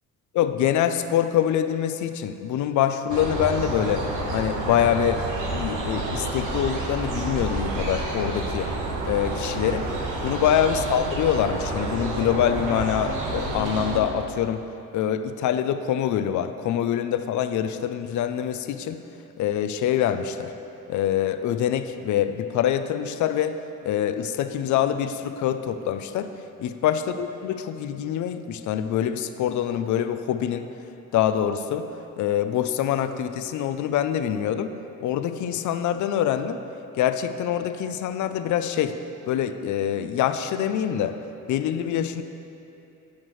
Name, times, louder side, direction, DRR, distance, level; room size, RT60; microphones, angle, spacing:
voice 1, 0.3-4.1 4.3-5.2 5.5-8.7 9.1-9.9 10.2-14.6 14.9-19.0 19.4-20.5 20.9-23.6 23.8-26.3 26.6-30.7 31.1-31.9 32.2-34.7 35.0-36.6 37.0-39.0 39.3-41.2 41.5-42.2, left 10 dB, 75° left, 10 dB, 0.6 m, -25 dB
sound 1, 3.1-14.0, right 2 dB, 85° right, 1.3 m, -29 dB
15.5 x 5.9 x 3.2 m, 2.8 s
cardioid pair, 90°, 30 cm